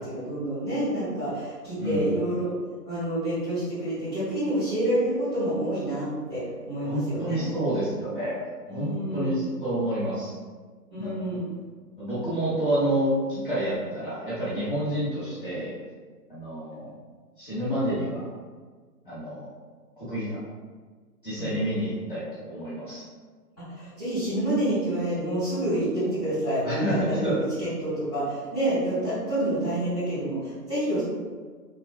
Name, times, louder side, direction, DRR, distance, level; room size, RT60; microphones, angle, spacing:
voice 1, 0.0-2.5 2.8-7.5 8.6-9.3 10.9-11.5 21.4-21.5 23.6-27.3 27.6-31.0, right 1 dB, 15° right, -17 dB, 0.9 m, -28 dB
voice 2, 1.8-2.1 6.8-8.4 8.7-10.3 11.0-11.2 12.0-15.7 16.3-16.9 17.4-18.2 19.0-19.5 20.0-20.4 21.2-23.0 26.6-27.3, right 1 dB, 30° left, -12 dB, 0.7 m, -28 dB
3.2 x 2.1 x 2.2 m, 1.5 s
figure-of-eight pair, 160°, 49 cm